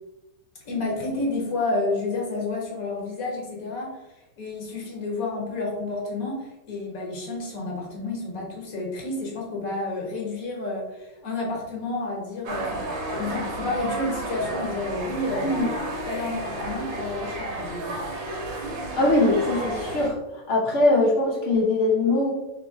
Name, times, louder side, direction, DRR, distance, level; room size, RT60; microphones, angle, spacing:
voice 1, 0.6-4.0 4.4-15.7 16.0-17.9, left 2 dB, 50° left, -2 dB, 1.2 m, -30 dB
sound 1, 12.5-20.1, right 2 dB, 70° right, 1.4 m, -32 dB
voice 2, 18.9-20.2 20.5-22.3, left 2 dB, 80° left, -3 dB, 0.6 m, -21 dB
3.4 x 2.9 x 3.7 m, 1.0 s
omnidirectional pair, 2.4 m